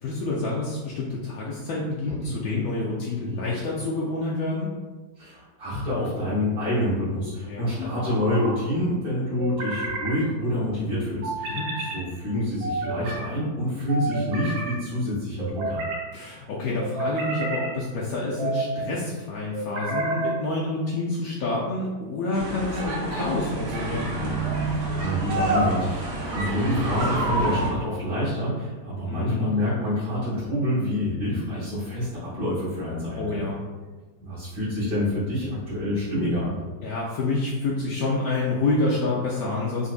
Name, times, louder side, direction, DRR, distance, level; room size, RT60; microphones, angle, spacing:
voice 1, 0.0-4.7 7.4-7.8 11.5-11.7 16.1-24.1 29.1-29.5 33.2-33.6 36.8-39.9, left 2 dB, 80° left, -5 dB, 0.8 m, -28 dB
voice 2, 5.2-15.8 24.7-33.5 34.2-36.6, left 1 dB, 30° right, -14 dB, 1.3 m, -27 dB
sound 1, 5.7-6.4 7.8-8.5 9.4-10.2 11.2-12.0 12.6-13.2 13.9-14.7 15.4-16.0 16.8-17.7 18.3-18.8 19.5-20.3, right 2 dB, 85° right, 1.7 m, -30 dB
sound 2, 22.3-27.7, right 2 dB, 70° right, 1.2 m, -27 dB
3.9 x 2.6 x 2.4 m, 1.3 s
omnidirectional pair, 2.1 m